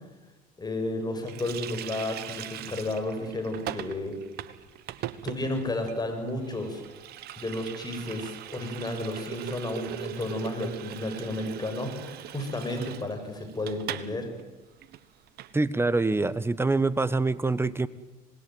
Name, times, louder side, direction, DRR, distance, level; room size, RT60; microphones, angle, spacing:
voice 1, 0.6-4.2 5.2-6.8 7.4-14.3, left 1 dB, 20° left, 5 dB, 7.6 m, -32 dB
Water tap faucet, 1.3-14.1 14.4-14.5 14.8-15.5, right 12 dB, 55° right, 1.5 m, -40 dB
voice 2, 15.5-17.9, right 3 dB, 10° right, 17 dB, 1.3 m, -25 dB
26.5 x 20.0 x 9.4 m, 1.2 s
hypercardioid pair, 75°, 19 cm